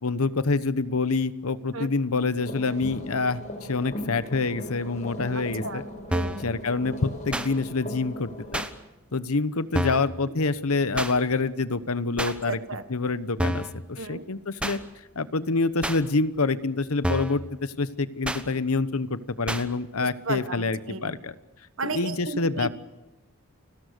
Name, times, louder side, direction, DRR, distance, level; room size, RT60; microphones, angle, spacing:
voice 1, 0.0-3.4 3.7-5.8 6.4-8.6 9.1-12.6 12.9-14.8 15.2-21.3 21.8-22.7, left 3 dB, 75° left, 14 dB, 1.0 m, -26 dB
sound 1, 2.4-8.6, left 1 dB, 35° left, 4.9 m, -38 dB
voice 2, 5.3-5.8 6.1-6.5 9.8-10.0 12.2-12.8 14.0-14.3 20.0-21.1 21.8-22.7, right 3 dB, 60° right, 10 dB, 1.5 m, -34 dB
sound 2, 6.1-6.4 7.3-7.5 8.5-8.7 9.7-10.1 11.0-11.1 12.2-12.3 13.4-13.7 14.6-14.8 15.8-16.0 17.0-17.4 18.2-18.4 19.5-19.6, equal, 5° right, 1.1 m, -28 dB
29.5 x 21.0 x 6.7 m, 1.1 s
head